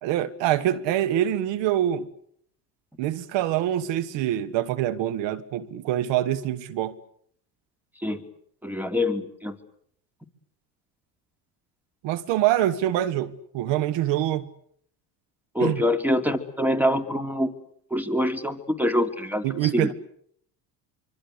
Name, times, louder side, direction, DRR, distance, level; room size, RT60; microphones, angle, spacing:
voice 1, 0.0-2.1 3.0-6.9 12.0-14.5 15.6-15.8 19.4-19.9, right 12 dB, 65° right, 1.5 m, -25 dB
voice 2, 8.6-9.6 15.6-17.5 17.9-19.9, left 1 dB, 5° right, 3.5 m, -25 dB
25.5 x 25.0 x 8.1 m
supercardioid pair, 80°, 46 cm